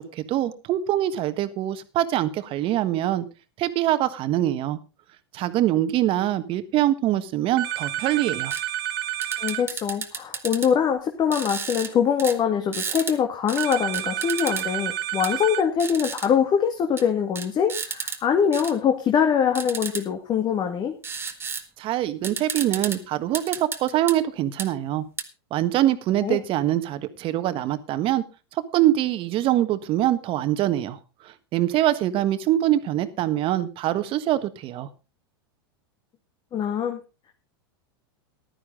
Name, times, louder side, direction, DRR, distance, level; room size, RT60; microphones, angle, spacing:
voice 1, 0.0-3.2 3.6-4.8 5.3-8.5 21.8-25.0 25.5-28.2 28.7-31.0 31.5-34.9, right 13 dB, 45° right, 12 dB, 1.5 m, -24 dB
sound 1, 7.6-9.6 13.6-15.6, right 12 dB, 60° right, 1.3 m, -29 dB
sound 2, 8.5-8.6 9.2-10.7 11.3-11.9 12.2-12.4 12.7-13.2 13.5-14.7 15.2-15.3 15.8-16.3 17.0-17.1 17.4-18.2 18.5-18.7 19.5-20.0 21.0-21.6 21.9-22.0 22.2-23.0 23.3-24.2 24.6-24.7 25.2-25.3, right 5 dB, 20° right, 1.8 m, -32 dB
voice 2, 9.4-20.9 26.2-26.4 36.5-37.0, left 7 dB, 35° left, 4 dB, 2.0 m, -23 dB
14.5 x 12.0 x 3.8 m, 0.30 s
hypercardioid pair, 105°, 13 cm